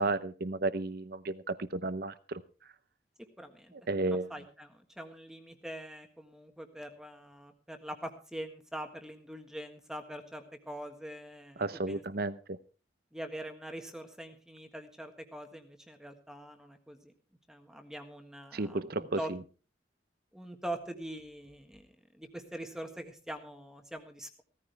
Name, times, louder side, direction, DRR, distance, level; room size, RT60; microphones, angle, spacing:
voice 1, 0.0-2.4 3.9-4.3 11.6-12.6 18.5-19.2, right 2 dB, 60° right, 14 dB, 0.9 m, -33 dB
voice 2, 3.4-3.7 4.3-12.0 13.1-17.1 17.5-19.3 20.3-21.9 22.1-24.4, right 1 dB, 5° right, 5 dB, 1.6 m, -43 dB
16.5 x 14.5 x 3.4 m, 0.36 s
head